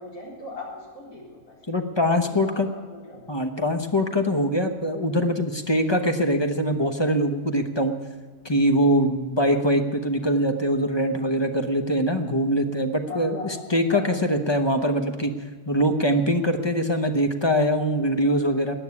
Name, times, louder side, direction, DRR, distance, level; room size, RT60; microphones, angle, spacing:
voice 1, 0.0-1.6 2.2-3.2 13.1-13.6 13.9-14.1, left 3 dB, 70° left, -4 dB, 4.5 m, -38 dB
voice 2, 1.7-2.7 3.3-8.0 8.4-15.3 15.7-18.7, equal, 20° left, 5 dB, 0.8 m, -23 dB
14.5 x 9.1 x 9.6 m, 1.4 s
omnidirectional pair, 1.6 m